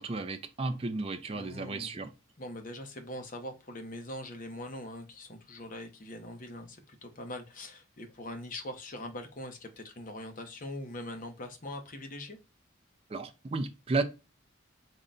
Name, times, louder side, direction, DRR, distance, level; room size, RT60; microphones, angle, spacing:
voice 1, 0.0-2.1 13.1-14.0, right 3 dB, 30° right, 0.4 m, -33 dB
voice 2, 1.3-1.9 2.4-12.4, left 1 dB, 40° left, 0.7 m, -42 dB
3.8 x 2.2 x 3.8 m
head